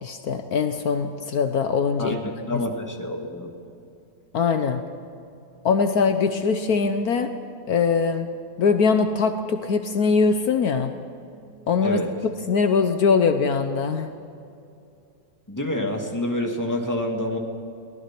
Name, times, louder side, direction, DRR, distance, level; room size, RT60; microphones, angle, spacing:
voice 1, 0.0-2.2 4.3-4.8 5.6-7.3 7.7-8.3 8.6-10.9 11.7-12.0 12.5-14.1, left 5 dB, 70° left, 8 dB, 1.4 m, -22 dB
voice 2, 2.0-3.5 11.8-12.1 15.5-17.4, left 1 dB, 10° left, 2 dB, 2.2 m, -27 dB
23.0 x 18.5 x 6.0 m, 2.6 s
omnidirectional pair, 1.7 m